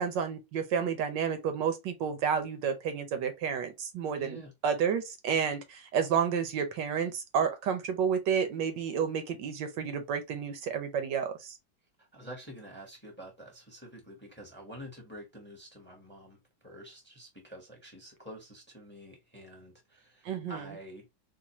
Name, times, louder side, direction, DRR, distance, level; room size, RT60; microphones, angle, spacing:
voice 1, 0.0-11.5 20.2-20.7, right 7 dB, 75° right, 1.3 m, -30 dB
voice 2, 4.2-4.5 12.0-21.1, equal, 5° left, 1.0 m, -48 dB
3.9 x 2.5 x 2.8 m
omnidirectional pair, 2.0 m